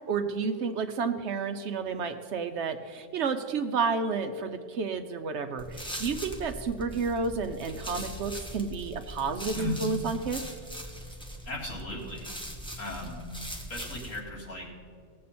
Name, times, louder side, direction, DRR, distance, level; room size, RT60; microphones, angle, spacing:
voice 1, 0.1-10.4, right 5 dB, 65° right, 8 dB, 0.9 m, -31 dB
sound 1, 5.6-14.2, equal, 5° left, 1.2 m, -41 dB
voice 2, 11.5-12.2 12.8-13.2 13.7-14.7, left 2 dB, 75° left, -3 dB, 2.8 m, -37 dB
18.0 x 7.6 x 4.2 m, 2.1 s
omnidirectional pair, 1.4 m